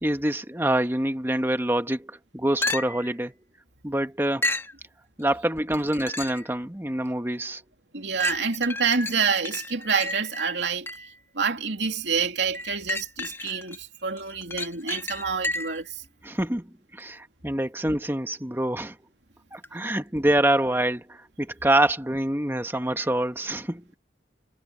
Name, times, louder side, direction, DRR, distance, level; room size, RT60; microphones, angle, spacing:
voice 1, 0.0-3.3 3.8-4.5 5.2-7.6 16.2-19.0 19.5-24.0, right 1 dB, 15° right, 1.4 m, -26 dB
sound 1, 2.6-3.2 4.4-4.8 5.7-6.5 7.1-7.2 8.2-11.2 12.5-13.8 14.2-15.9 19.6-19.7, left 2 dB, 15° left, 2.5 m, -32 dB
voice 2, 7.9-10.9 11.3-16.0 23.0-23.1, right 5 dB, 85° right, 2.9 m, -27 dB
head